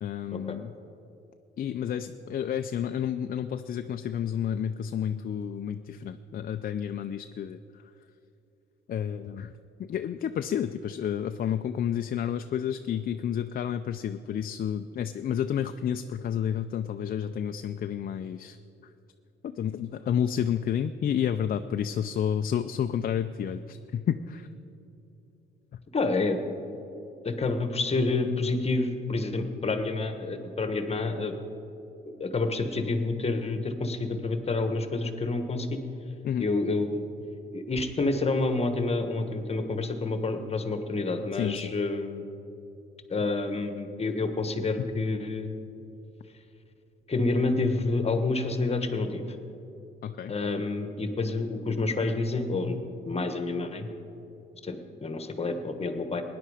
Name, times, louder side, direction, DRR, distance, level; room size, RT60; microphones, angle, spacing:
voice 1, 0.0-0.8 1.6-7.6 8.9-9.5 9.8-18.6 19.4-24.5 36.2-36.5 41.3-41.7 44.8-44.9 50.0-50.3, left 9 dB, 45° left, 8 dB, 0.4 m, -30 dB
voice 2, 25.9-26.7 27.2-31.3 32.2-35.8 36.4-37.0 37.5-42.2 43.1-45.5 47.1-49.2 50.3-52.8 53.1-53.9 54.6-56.2, left 3 dB, 30° left, 7 dB, 1.3 m, -28 dB
16.5 x 10.0 x 4.9 m, 2.9 s
cardioid pair, 90°, 20 cm